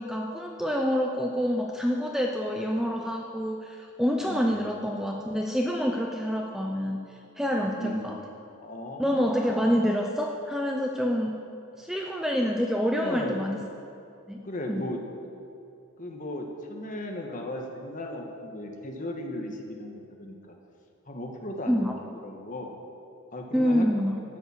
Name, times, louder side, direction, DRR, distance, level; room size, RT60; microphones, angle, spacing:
voice 1, 0.0-7.0 7.4-8.2 9.0-11.4 11.8-13.6 14.3-14.4 14.7-14.9 21.7-22.0 23.5-24.2, equal, ahead, 1 dB, 0.5 m, -27 dB
voice 2, 4.1-4.6 7.7-8.1 8.6-9.4 12.9-13.4 14.4-15.0 16.0-20.5 21.1-21.8 22.2-22.7 23.3-23.9, left 1 dB, 35° left, 1 dB, 1.3 m, -36 dB
12.5 x 7.0 x 7.2 m, 2.6 s
head